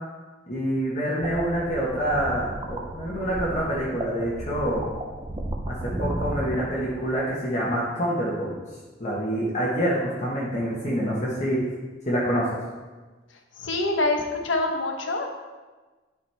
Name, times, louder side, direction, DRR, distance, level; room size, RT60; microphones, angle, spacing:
voice 1, 0.5-4.8 5.7-8.6 9.0-11.6 12.1-12.5, equal, 40° left, -6 dB, 1.2 m, -26 dB
sound 1, 1.2-7.3, right 1 dB, 25° right, 0.6 m, -34 dB
voice 2, 13.6-15.3, left 2 dB, 85° left, 3 dB, 1.0 m, -25 dB
10.0 x 5.0 x 3.4 m, 1.3 s
head